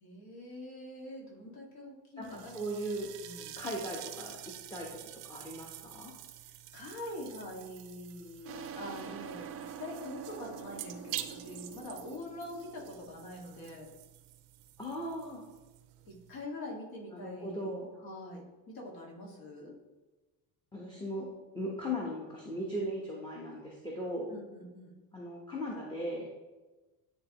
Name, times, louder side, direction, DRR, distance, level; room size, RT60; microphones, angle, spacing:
voice 1, 0.0-2.6 3.2-3.6 6.4-13.9 16.1-17.7 18.0-19.7 24.3-25.0, left 1 dB, 60° left, -2 dB, 1.9 m, -44 dB
voice 2, 2.2-3.1 3.6-4.4 4.7-4.9 5.2-6.1 14.8-15.4 17.1-17.9 20.7-21.3 21.5-24.3 25.1-26.3, equal, 10° left, -2 dB, 0.9 m, -38 dB
sound 1, 2.2-16.5, right 13 dB, 85° right, 0.6 m, -48 dB
sound 2, 8.4-13.8, right 7 dB, 35° right, 0.5 m, -46 dB
10.0 x 3.4 x 2.9 m, 1.2 s
cardioid pair, 110°, 41 cm